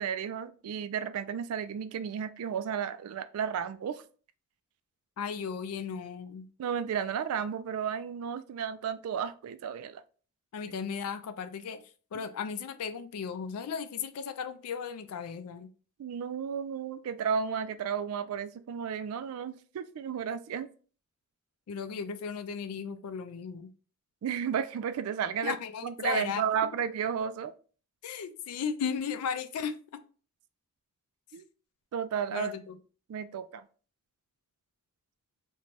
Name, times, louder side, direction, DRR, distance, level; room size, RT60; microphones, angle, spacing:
voice 1, 0.0-4.0 6.6-10.0 16.0-20.7 24.2-25.6 25.8-27.5 31.3-31.4 31.9-32.5 33.1-33.6, right 7 dB, 75° right, 0.3 m, -33 dB
voice 2, 5.2-6.5 10.5-11.8 12.1-15.7 21.7-23.7 25.4-26.4 28.0-30.0 32.3-32.8, left 6 dB, 90° left, 0.4 m, -35 dB
2.6 x 2.2 x 3.1 m
head